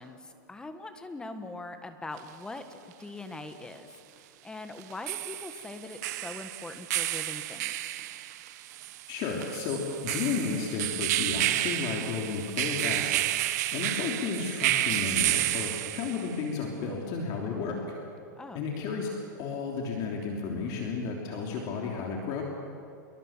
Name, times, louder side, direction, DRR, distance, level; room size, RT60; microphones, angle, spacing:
voice 1, 0.0-3.9 4.4-7.7 18.4-18.7, left 2 dB, 10° left, 8 dB, 1.6 m, -42 dB
sound 1, 2.2-2.3 4.8-16.4, right 15 dB, 55° right, 1.1 m, -31 dB
voice 2, 9.1-13.2 13.7-17.8 18.5-22.4, left 5 dB, 40° left, 0 dB, 3.4 m, -33 dB
28.0 x 23.0 x 7.5 m, 2.5 s
supercardioid pair, 150°, 11 cm